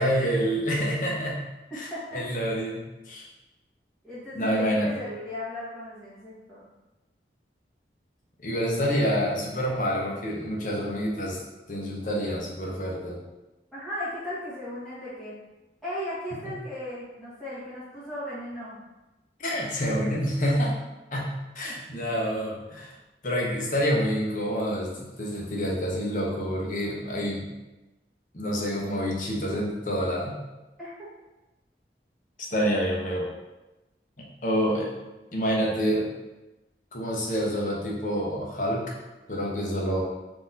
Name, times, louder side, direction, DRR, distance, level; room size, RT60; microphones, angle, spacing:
voice 1, 0.0-1.4 1.7-2.8 3.1-3.3 4.3-4.9 8.4-11.4 11.7-13.2 19.4-20.7 21.1-22.9 23.2-27.5 28.3-30.4 32.5-33.3 34.2-34.9 35.3-36.0 36.9-38.9 39.3-40.0, equal, 45° left, -3 dB, 0.9 m, -27 dB
voice 2, 1.7-2.2 4.0-6.6 13.7-15.3 15.8-18.8 22.1-22.2 30.8-30.9, left 1 dB, ahead, -13 dB, 1.4 m, -36 dB
4.2 x 2.9 x 3.9 m, 1.0 s
head